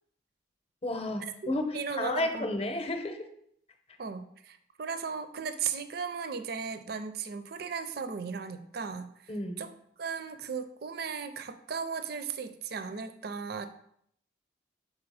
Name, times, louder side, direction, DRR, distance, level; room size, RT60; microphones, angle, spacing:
voice 1, 0.8-1.6 2.0-3.2 9.3-9.6, left 1 dB, 30° left, 5 dB, 0.7 m, -32 dB
voice 2, 1.4-2.5 4.0-9.7 10.0-13.7, right 6 dB, 55° right, 10 dB, 0.5 m, -36 dB
6.1 x 4.0 x 4.8 m, 0.69 s
head